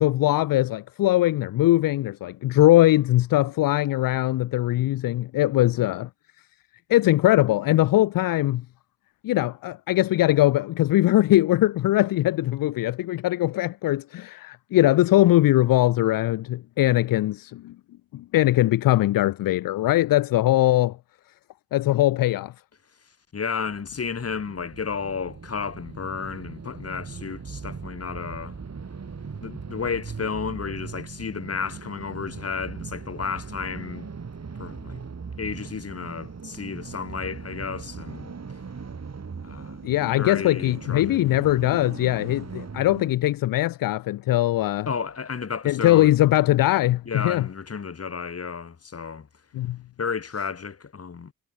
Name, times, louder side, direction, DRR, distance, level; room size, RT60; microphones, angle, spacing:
voice 1, 0.0-6.1 6.9-8.6 9.2-17.7 18.1-21.0 21.7-22.5 39.8-44.9 45.7-47.5 49.5-49.8, left 15 dB, 70° left, 0.5 m, -21 dB
voice 2, 23.3-28.6 29.4-34.1 34.6-35.0 35.4-38.3 39.4-39.8 40.1-41.2 44.9-46.2 47.1-49.3 50.0-51.3, left 6 dB, 45° left, 2.2 m, -32 dB
sound 1, 23.7-43.1, right 5 dB, 45° right, 6.4 m, -39 dB
cardioid pair, 75°, 35 cm